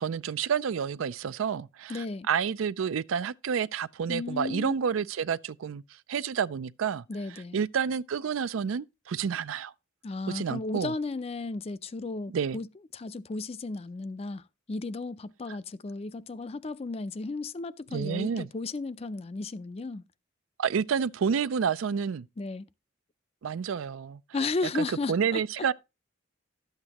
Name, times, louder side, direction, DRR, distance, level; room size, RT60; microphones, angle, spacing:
voice 1, 0.0-5.8 6.1-7.0 7.5-9.7 10.3-10.9 12.3-12.6 17.9-18.5 20.6-22.3 23.4-24.2 24.7-25.7, right 7 dB, 80° right, 0.4 m, -29 dB
voice 2, 1.9-2.3 4.1-4.8 7.1-7.6 10.0-14.4 14.7-20.0 22.4-22.7 24.3-25.4, left 3 dB, 30° left, 0.4 m, -34 dB
12.0 x 8.0 x 2.9 m
head